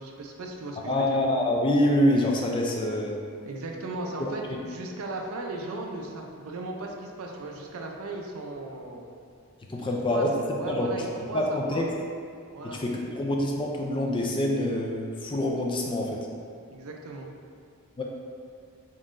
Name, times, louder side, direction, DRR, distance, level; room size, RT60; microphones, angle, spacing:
voice 1, 0.0-1.2 3.4-9.1 9.8-11.8 12.5-12.8 16.7-17.3, right 2 dB, 80° right, 1 dB, 0.5 m, -37 dB
voice 2, 0.9-3.2 4.2-4.3 9.7-10.3 10.7-11.9 12.6-16.3 18.0-18.1, left 1 dB, 20° left, 0 dB, 0.3 m, -26 dB
4.1 x 3.7 x 2.5 m, 2.2 s
head